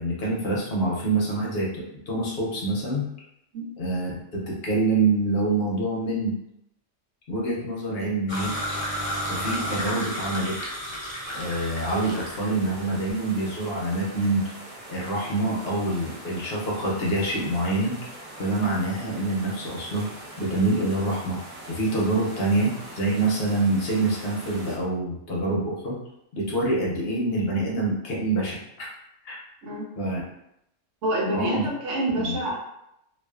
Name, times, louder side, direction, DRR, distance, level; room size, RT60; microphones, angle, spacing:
voice 1, 0.0-3.0 3.8-6.3 7.3-8.5 9.3-10.6 11.3-14.4 14.9-17.9 18.4-20.1 20.4-21.4 21.7-26.0 26.4-28.9 29.2-29.4 30.0-30.2 31.3-31.7 32.2-32.4, right 2 dB, 60° left, -4 dB, 0.8 m, -26 dB
sound 1, 8.3-12.5, equal, 40° left, 0.4 m, -31 dB
sound 2, 11.2-24.8, right 1 dB, 40° right, 0.5 m, -42 dB
voice 2, 31.0-32.6, right 1 dB, 90° right, -2 dB, 1.0 m, -27 dB
2.4 x 2.3 x 2.3 m, 0.79 s
omnidirectional pair, 1.2 m